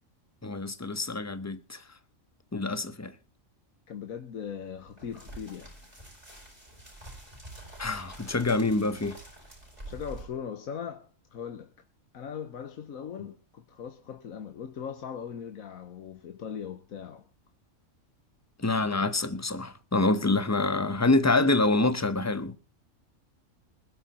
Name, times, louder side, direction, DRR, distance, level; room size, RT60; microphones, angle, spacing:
voice 1, 0.4-1.8 2.5-3.1 7.8-9.2 18.6-22.6, left 2 dB, 15° left, 0.8 m, -26 dB
voice 2, 3.9-5.7 9.8-11.7 12.1-17.3, left 7 dB, 85° left, 1.5 m, -39 dB
sound 1, 4.7-10.2, right 1 dB, 30° right, 7.0 m, -47 dB
21.0 x 12.0 x 4.3 m
omnidirectional pair, 1.4 m